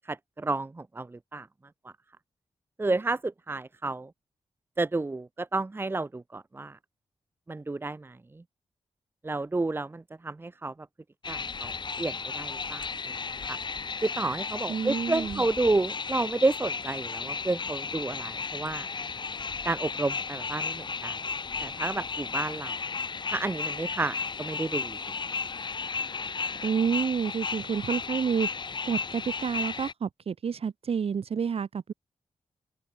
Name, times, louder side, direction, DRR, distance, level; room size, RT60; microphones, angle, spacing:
voice 1, 0.1-1.5 1.8-1.9 2.8-4.1 4.8-6.8 7.5-8.2 9.2-10.7 11.3-11.7 12.0-12.9 13.5-13.6 14.0-18.9 19.6-21.2 21.6-22.8 23.3-25.0, right 3 dB, 20° right, 1.3 m, -30 dB
sound 1, 11.2-29.9, left 5 dB, 45° left, 6.2 m, -34 dB
voice 2, 14.7-15.4 26.6-28.5 28.8-31.9, right 6 dB, 65° right, 7.5 m, -29 dB
wide cardioid pair, 155°, 11 cm